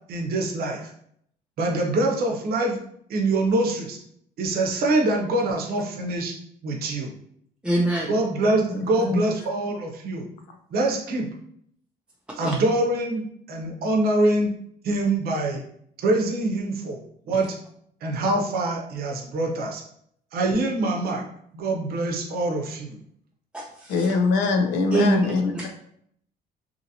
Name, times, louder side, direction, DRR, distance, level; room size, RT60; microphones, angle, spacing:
voice 1, 0.1-0.9 1.6-2.8 3.1-4.0 4.4-6.3 6.6-7.1 8.0-10.3 10.7-11.3 12.4-14.5 14.8-15.6 16.0-17.0 17.3-17.6 18.0-19.8 20.3-21.2 21.5-23.0, right 2 dB, 65° right, 1 dB, 0.7 m, -24 dB
voice 2, 7.6-8.1 12.4-12.5 23.5-23.9 24.9-25.2 25.5-25.7, right 1 dB, 5° right, -3 dB, 0.4 m, -23 dB
voice 3, 8.7-9.2 23.9-25.5, left 4 dB, 85° left, 5 dB, 0.5 m, -23 dB
2.8 x 2.7 x 2.7 m, 0.68 s
cardioid pair, 110°, 17 cm